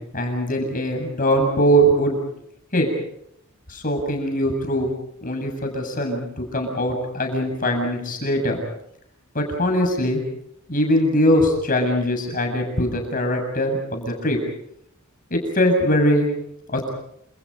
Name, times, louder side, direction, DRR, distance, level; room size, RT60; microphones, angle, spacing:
voice 1, 0.1-2.2 2.7-2.9 3.7-4.9 5.2-8.6 9.3-10.2 10.7-14.4 15.3-16.3 16.7-16.9, equal, 40° left, 3 dB, 7.6 m, -21 dB
29.0 x 28.5 x 5.4 m, 0.73 s
head